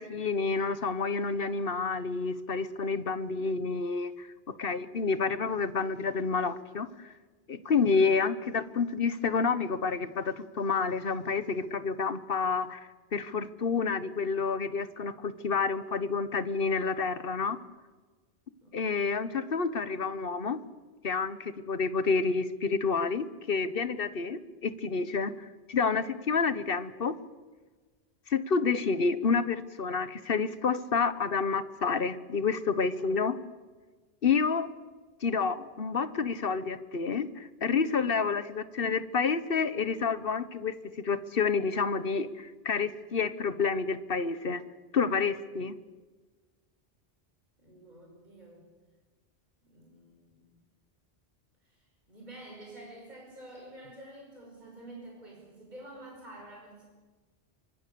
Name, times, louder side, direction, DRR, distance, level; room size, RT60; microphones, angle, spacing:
voice 1, 0.0-7.1 7.5-17.6 18.7-20.6 21.0-25.3 25.7-27.2 28.3-33.4 34.2-34.7 35.2-44.6 44.9-45.7, left 5 dB, 60° left, 13 dB, 1.4 m, -29 dB
voice 2, 7.5-7.9 18.6-19.2 47.6-48.7 49.6-50.5 51.7-56.8, right 1 dB, 45° right, -1 dB, 5.7 m, -49 dB
27.0 x 25.0 x 7.0 m, 1.4 s
omnidirectional pair, 1.1 m